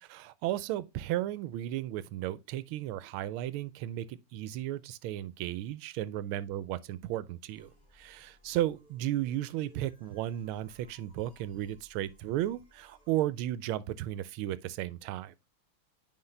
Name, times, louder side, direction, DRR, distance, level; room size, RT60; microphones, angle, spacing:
voice 1, 0.0-15.3, right 13 dB, 90° right, 1.5 m, -34 dB
sound 1, 7.5-13.2, left 1 dB, 15° left, 3.0 m, -62 dB
9.6 x 4.3 x 3.2 m
omnidirectional pair, 2.3 m